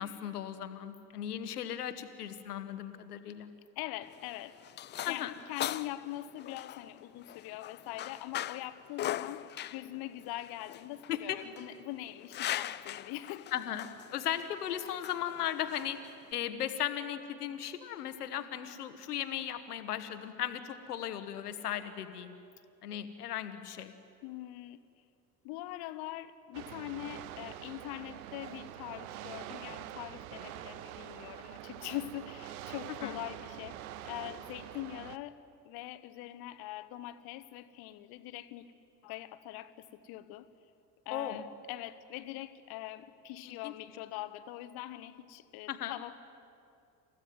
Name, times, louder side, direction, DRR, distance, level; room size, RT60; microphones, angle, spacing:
voice 1, 0.0-3.5 5.0-5.3 11.1-11.4 13.5-16.0 16.3-22.4 22.8-23.9 33.0-33.1 41.1-41.4 43.5-43.7 45.7-46.0, left 10 dB, 70° left, 10 dB, 1.5 m, -37 dB
voice 2, 3.7-4.6 5.1-13.5 24.2-24.8 25.4-35.4 35.6-38.7 39.0-40.5 41.0-46.1, left 15 dB, 50° left, 12 dB, 1.3 m, -43 dB
sound 1, 4.0-16.3, left 12 dB, 25° left, 0.5 m, -41 dB
sound 2, 26.5-35.2, right 12 dB, 60° right, 0.9 m, -45 dB
29.0 x 15.5 x 9.5 m, 2.5 s
figure-of-eight pair, 65°, 48 cm